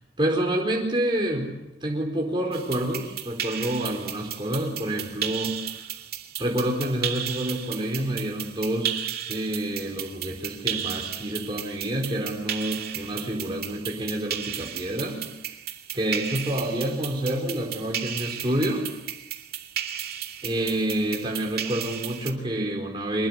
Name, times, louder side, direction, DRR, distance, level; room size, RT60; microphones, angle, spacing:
voice 1, 0.2-5.6 6.4-15.2 15.9-18.9 20.4-23.3, right 1 dB, 25° right, -1 dB, 4.7 m, -28 dB
sound 1, 2.5-22.3, right 10 dB, 60° right, 2.6 m, -34 dB
25.5 x 21.5 x 8.3 m, 0.95 s
head